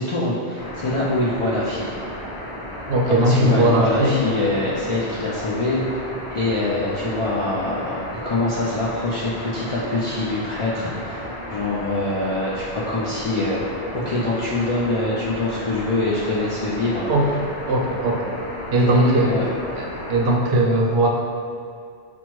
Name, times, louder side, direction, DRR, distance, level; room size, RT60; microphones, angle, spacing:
voice 1, 0.0-1.9 3.1-5.8 6.3-13.6 13.9-17.1 18.8-19.5, left 2 dB, 55° left, -7 dB, 0.3 m, -24 dB
sound 1, 0.6-20.3, left 1 dB, 70° left, 1.0 m, -34 dB
voice 2, 2.9-4.2 9.9-10.0 17.1-17.3 17.7-18.3 18.7-19.3 19.8-21.1, right 1 dB, 70° right, -1 dB, 0.8 m, -19 dB
6.0 x 2.1 x 3.0 m, 2.3 s
omnidirectional pair, 1.1 m